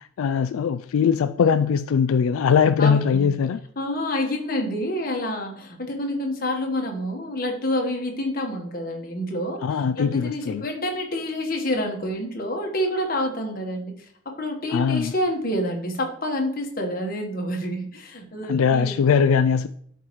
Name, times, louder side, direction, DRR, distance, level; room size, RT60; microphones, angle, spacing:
voice 1, 0.0-3.6 9.6-10.6 14.7-15.1 18.5-19.7, left 6 dB, 90° left, 0.3 m, -21 dB
voice 2, 2.8-3.3 3.8-9.6 9.9-13.9 14.2-19.0, left 1 dB, 45° left, 1.4 m, -28 dB
12.0 x 4.6 x 3.1 m
head